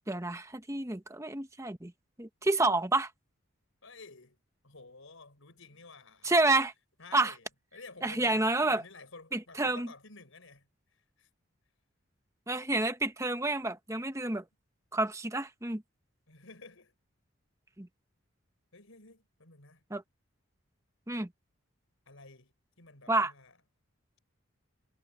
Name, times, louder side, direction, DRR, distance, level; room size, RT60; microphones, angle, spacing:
voice 1, 0.1-1.9 2.2-3.1 6.2-6.7 7.1-7.3 8.0-8.8 9.3-9.9 12.5-14.4 14.9-15.8 17.8-17.9 19.9-20.0 21.1-21.3 23.1-23.3, right 2 dB, 15° right, 1.0 m, -29 dB
voice 2, 3.8-4.4 4.6-6.3 7.0-7.5 7.7-11.3 16.3-16.9 18.7-19.8 22.1-22.5 22.8-23.5, left 3 dB, 75° left, 4.7 m, -52 dB
head